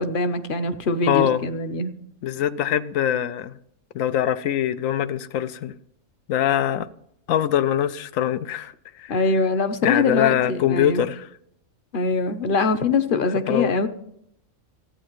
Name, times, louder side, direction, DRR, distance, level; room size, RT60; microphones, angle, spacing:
voice 1, 0.0-1.9 9.1-11.0 11.9-13.9, left 3 dB, 50° left, 0.8 m, -23 dB
voice 2, 1.1-1.4 2.2-3.5 3.9-5.7 6.3-6.9 7.3-8.7 9.0-9.1 9.8-11.2 13.5-13.8, left 10 dB, 85° left, 1.0 m, -23 dB
14.0 x 8.8 x 3.0 m
omnidirectional pair, 1.3 m